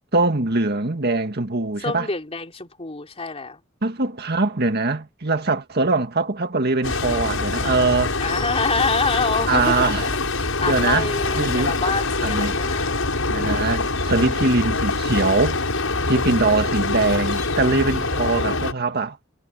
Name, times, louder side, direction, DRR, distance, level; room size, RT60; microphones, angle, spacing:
voice 1, 0.1-2.1 3.8-8.2 9.5-10.1 10.6-11.1 11.3-11.8 12.2-12.6 13.3-15.6 16.1-19.2, right 3 dB, 50° right, 2.0 m, -22 dB
voice 2, 1.8-3.6 7.6-13.2 15.7-16.2 17.6-18.2, left 3 dB, 30° left, 3.0 m, -27 dB
sound 1, 6.8-18.7, left 3 dB, 85° left, 6.3 m, -24 dB
head